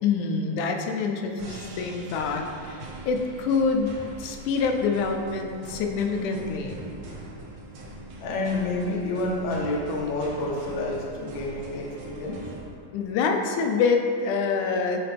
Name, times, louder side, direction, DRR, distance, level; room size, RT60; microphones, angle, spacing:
voice 1, 0.0-6.8 12.9-15.0, left 5 dB, 90° left, 3 dB, 2.1 m, -26 dB
sound 1, 1.4-12.7, right 2 dB, 65° right, 1.9 m, -42 dB
voice 2, 8.2-12.5, left 2 dB, 75° left, -2 dB, 1.1 m, -29 dB
10.0 x 4.0 x 3.3 m, 2.4 s
omnidirectional pair, 3.4 m